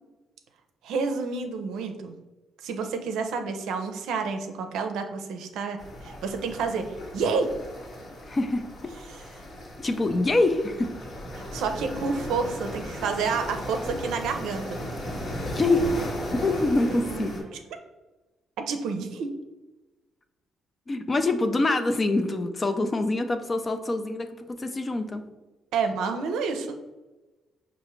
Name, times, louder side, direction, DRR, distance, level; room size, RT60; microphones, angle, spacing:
voice 1, 0.8-2.1 2.6-6.9 7.1-7.5 11.4-14.8 17.1-17.3 18.7-19.3 25.7-26.8, right 5 dB, 85° right, 6 dB, 0.5 m, -29 dB
sound 1, 5.8-17.4, equal, 55° left, 1.1 m, -36 dB
voice 2, 8.3-8.6 9.8-10.9 15.5-17.5 20.9-25.2, left 2 dB, 30° left, 7 dB, 0.4 m, -25 dB
Bowed string instrument, 11.9-17.7, right 2 dB, 45° right, 0.7 m, -46 dB
4.7 x 2.5 x 3.1 m, 1.1 s
cardioid pair, 90°, 0 cm